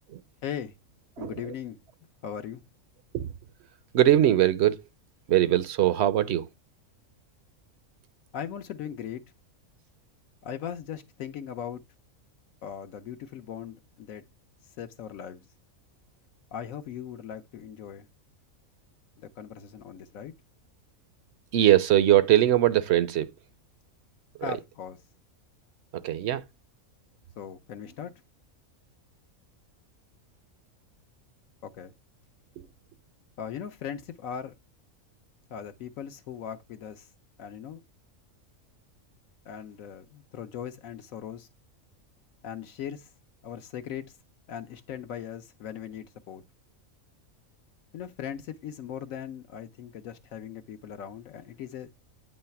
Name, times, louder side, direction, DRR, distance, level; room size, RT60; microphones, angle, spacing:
voice 1, 0.4-0.7 1.2-1.8 2.2-2.6 8.3-9.2 10.4-11.8 12.6-14.2 14.6-15.4 16.5-18.1 19.2-20.3 24.4-25.0 27.4-28.1 31.6-31.9 33.4-34.5 35.5-37.1 37.4-37.8 39.5-41.5 42.4-43.1 43.4-44.1 44.5-46.4 47.9-51.9, left 9 dB, 80° left, 1.1 m, -39 dB
voice 2, 3.9-4.8 5.3-6.5 21.5-23.3 26.0-26.4, right 12 dB, 65° right, 0.7 m, -21 dB
9.1 x 3.1 x 5.7 m
omnidirectional pair, 1.4 m